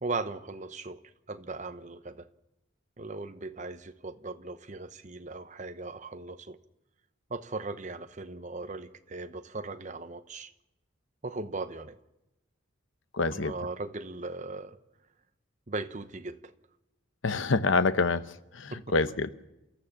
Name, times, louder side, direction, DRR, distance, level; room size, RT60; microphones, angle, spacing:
voice 1, 0.0-1.0 1.3-2.3 3.0-6.6 7.3-10.5 11.2-12.0 13.3-14.8 15.7-16.5 18.7-18.8, right 3 dB, 35° right, 0.9 m, -38 dB
voice 2, 13.1-13.5 17.2-18.2 18.5-19.3, left 3 dB, 70° left, 0.9 m, -26 dB
29.0 x 14.0 x 7.3 m
head